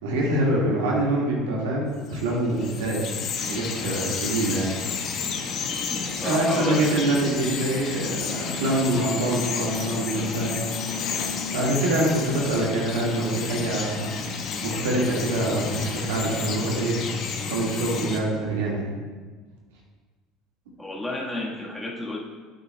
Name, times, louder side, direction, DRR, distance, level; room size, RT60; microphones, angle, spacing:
voice 1, 0.0-3.0 3.5-4.7 6.2-10.6 11.5-18.9, right 1 dB, 90° right, -4 dB, 1.9 m, -25 dB
Bird vocalization bird call bird song, 2.1-18.2, left 5 dB, 55° left, 1.0 m, -31 dB
voice 2, 5.9-7.1 20.8-22.2, left 1 dB, 10° left, -4 dB, 1.5 m, -32 dB
sound 1, 8.1-12.9, left 6 dB, 80° left, 0.8 m, -44 dB
8.5 x 8.0 x 2.3 m, 1.4 s
supercardioid pair, 90°, 0 cm